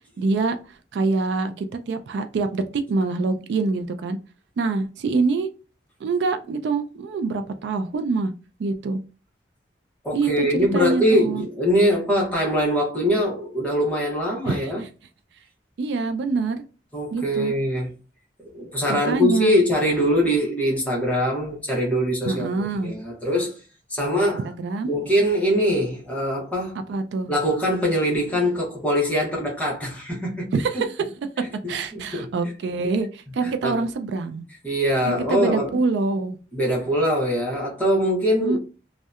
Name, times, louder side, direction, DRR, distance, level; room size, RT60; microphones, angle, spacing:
voice 1, 0.2-4.2 4.6-5.5 6.0-8.3 8.6-9.0 10.1-11.5 14.4-14.9 15.8-16.6 17.1-17.5 18.9-19.6 22.3-22.9 24.4-24.9 26.9-27.3 30.5-31.0 31.7-34.4 35.1-36.4 38.4-38.6, right 3 dB, 70° right, 0.3 m, -25 dB
voice 2, 10.0-14.8 16.9-17.9 18.5-23.5 23.9-24.5 24.8-26.7 27.3-30.8 31.6-32.3 33.4-33.8 34.6-35.7 36.5-38.6, equal, 10° left, 0.8 m, -23 dB
2.7 x 2.1 x 2.3 m
head